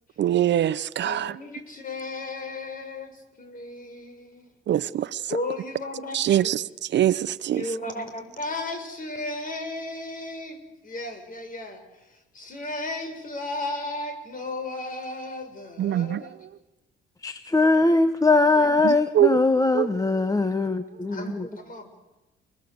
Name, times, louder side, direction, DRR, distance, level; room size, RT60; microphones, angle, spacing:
voice 1, 0.2-1.3 4.7-5.1 6.1-6.6 6.9-7.6 15.8-16.2 18.8-19.3 19.7-19.9, right 11 dB, 65° right, 0.8 m, -22 dB
voice 2, 1.0-4.5 4.8-4.9 5.3-6.7 7.5-16.3 18.5-18.8 21.1-21.9, left 2 dB, 45° left, 6.6 m, -35 dB
voice 3, 17.2-21.5, left 3 dB, 15° left, 1.1 m, -21 dB
30.0 x 21.5 x 8.0 m
cardioid pair, 90°, 20 cm